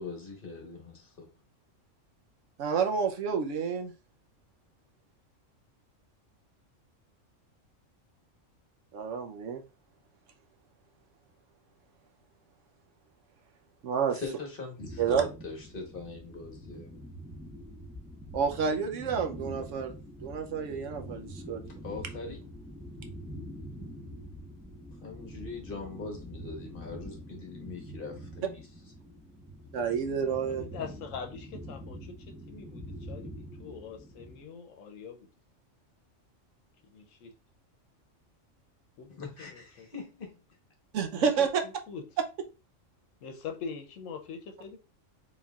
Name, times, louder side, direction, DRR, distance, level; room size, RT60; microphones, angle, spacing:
voice 1, 0.0-1.3 14.1-17.0 21.8-22.4 24.9-28.6 39.1-40.4, left 4 dB, 45° left, 1.3 m, -41 dB
voice 2, 2.6-3.9 8.9-9.6 13.8-14.2 15.0-15.2 18.3-19.9 20.2-21.6 29.7-30.7 40.9-41.6, right 6 dB, 70° right, 1.0 m, -29 dB
sound 1, 14.8-34.4, equal, 5° right, 0.5 m, -45 dB
voice 3, 30.4-33.3 33.6-35.3 36.8-37.3 39.0-39.1 39.4-39.9 41.1-42.1 43.2-44.8, left 6 dB, 80° left, 1.0 m, -43 dB
4.1 x 3.6 x 2.3 m
omnidirectional pair, 1.3 m